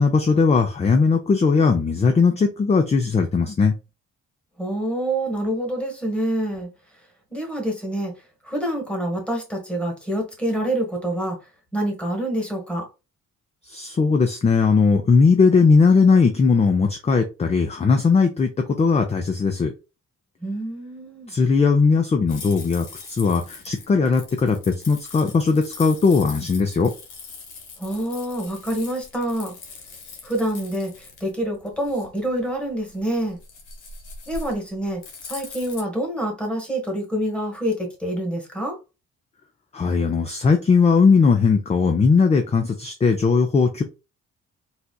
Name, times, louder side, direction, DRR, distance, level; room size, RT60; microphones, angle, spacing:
voice 1, 0.0-3.8 13.7-19.7 21.3-26.9 39.7-43.8, left 4 dB, 20° left, 0.4 m, -18 dB
voice 2, 4.6-6.7 7.3-8.1 8.4-12.9 20.4-21.3 27.8-29.5 30.2-33.4 34.3-38.8, right 1 dB, 5° left, 1.4 m, -27 dB
sound 1, 22.3-35.8, left 4 dB, 85° left, 1.1 m, -41 dB
4.1 x 2.4 x 2.2 m
cardioid pair, 90°, 30 cm